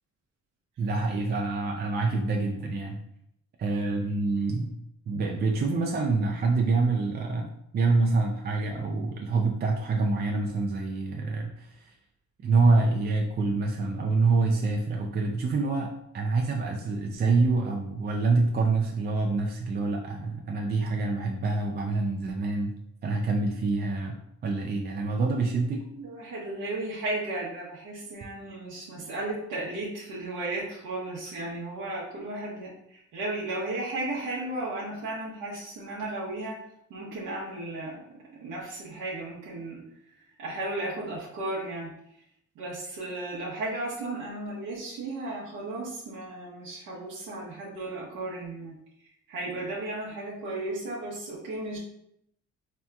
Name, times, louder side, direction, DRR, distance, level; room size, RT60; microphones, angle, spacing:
voice 1, 0.8-3.0 3.6-4.7 5.1-11.9 12.4-22.7 23.0-25.8, right 3 dB, 35° right, 1 dB, 0.4 m, -26 dB
voice 2, 26.0-36.6 36.9-38.1 38.3-41.9 42.5-48.8 49.3-51.8, right 2 dB, 85° right, -6 dB, 0.8 m, -35 dB
3.3 x 2.8 x 2.3 m, 0.75 s
cardioid pair, 90°, 30 cm